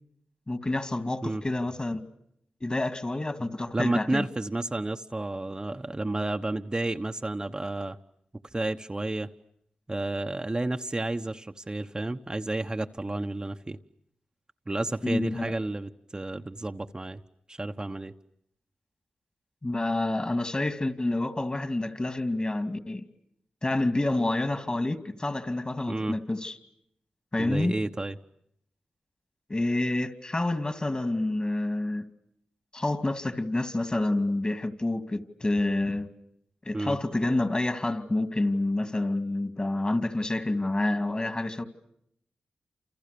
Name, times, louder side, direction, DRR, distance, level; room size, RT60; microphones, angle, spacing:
voice 1, 0.5-2.1 2.6-4.3 15.0-15.5 19.6-23.0 23.6-26.6 27.3-27.7 29.5-32.0 32.7-36.1 36.7-41.6, left 2 dB, 30° left, 2.6 m, -28 dB
voice 2, 3.7-8.0 8.5-9.3 9.9-13.8 14.7-17.2 17.5-18.1 25.9-26.2 27.4-28.2 36.7-37.0, right 2 dB, 25° right, 1.0 m, -31 dB
29.5 x 28.0 x 6.9 m
cardioid pair, 50°, 3 cm